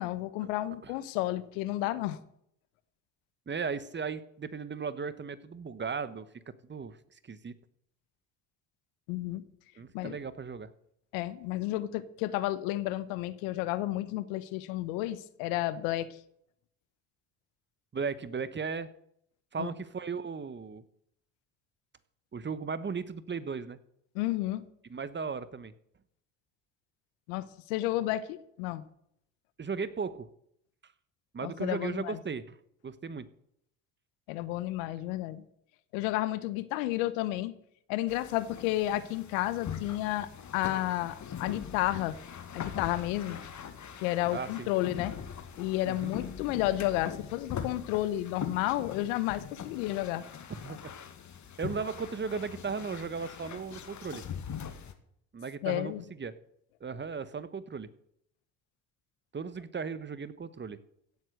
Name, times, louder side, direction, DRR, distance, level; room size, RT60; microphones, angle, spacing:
voice 1, 0.0-2.2 9.1-9.4 9.9-10.1 11.1-16.1 19.6-19.7 24.1-24.6 27.3-28.8 31.4-32.2 34.3-35.4 35.9-37.5 37.9-42.2 42.5-43.4 44.0-45.1 45.6-50.2 55.6-56.0, left 15 dB, 80° left, 15 dB, 1.1 m, -31 dB
voice 2, 3.5-6.3 6.6-7.0 7.2-7.5 9.8-10.7 17.9-18.9 19.5-20.8 22.3-23.8 24.9-25.7 29.6-30.3 31.3-32.6 32.8-33.3 44.3-44.7 45.8-46.1 50.5-50.8 51.6-54.2 55.3-56.3 56.8-57.9 59.3-60.8, right 5 dB, 25° right, 15 dB, 1.2 m, -36 dB
sound 1, 38.1-54.9, left 8 dB, 45° left, 1.9 m, -42 dB
16.5 x 7.6 x 6.6 m, 0.71 s
hypercardioid pair, 65°, 40 cm